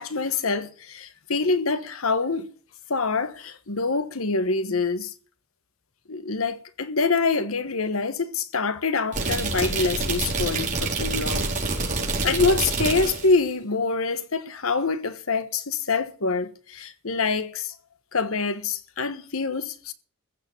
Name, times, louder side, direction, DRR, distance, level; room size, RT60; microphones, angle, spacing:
voice 1, 0.0-2.5 2.9-5.1 6.1-11.5 12.2-17.7 18.1-19.9, left 4 dB, 85° left, 1.3 m, -25 dB
sound 1, 9.1-13.4, right 3 dB, 40° right, 4.8 m, -27 dB
15.0 x 7.0 x 8.5 m
head